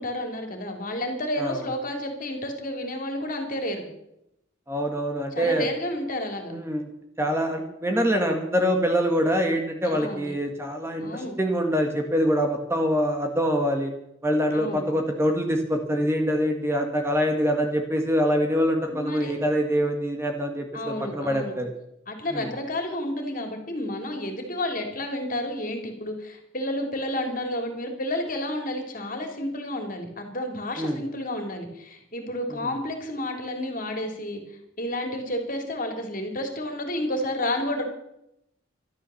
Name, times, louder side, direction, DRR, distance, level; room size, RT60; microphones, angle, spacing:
voice 1, 0.0-3.8 5.3-6.5 9.8-10.3 11.0-11.4 14.5-14.8 18.9-19.3 20.7-21.5 22.1-37.8, left 1 dB, 40° left, 4 dB, 3.2 m, -31 dB
voice 2, 4.7-5.7 6.5-6.8 7.2-13.9 14.2-21.7 22.3-22.5 30.8-31.0, equal, 15° right, 3 dB, 1.5 m, -25 dB
13.0 x 12.5 x 7.1 m, 0.81 s
head